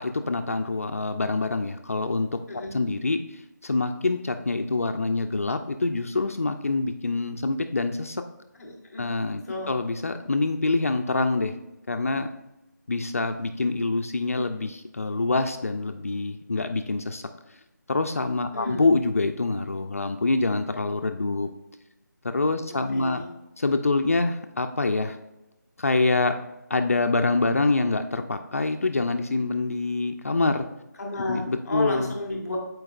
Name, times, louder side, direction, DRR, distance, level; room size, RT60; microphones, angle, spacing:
voice 1, 0.0-2.3 2.7-8.2 9.0-11.5 11.9-12.3 12.9-17.2 17.9-21.5 22.3-23.2 23.6-25.2 25.8-26.3 26.7-30.7 31.3-32.1, left 3 dB, 50° left, 6 dB, 0.4 m, -25 dB
voice 2, 8.6-9.1 9.4-9.7 18.5-18.8 22.7-23.3 31.0-32.6, left 2 dB, 5° left, -10 dB, 0.6 m, -33 dB
12.5 x 4.6 x 2.4 m, 0.97 s
figure-of-eight pair, 175°, 10 cm